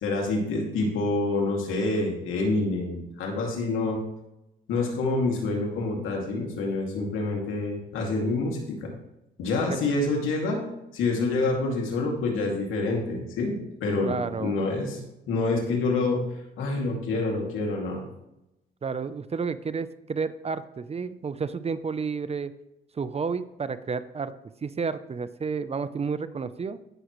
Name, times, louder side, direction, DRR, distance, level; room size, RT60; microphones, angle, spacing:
voice 1, 0.0-4.1 4.7-8.9 9.4-10.6 10.9-15.0 15.3-16.2 16.6-18.0, left 3 dB, 90° left, 0 dB, 2.5 m, -27 dB
voice 2, 14.0-14.6 18.8-22.5 23.0-24.3 24.6-26.8, right 5 dB, 30° right, 13 dB, 0.6 m, -31 dB
17.0 x 6.4 x 3.1 m, 0.88 s
cardioid pair, 90°, 20 cm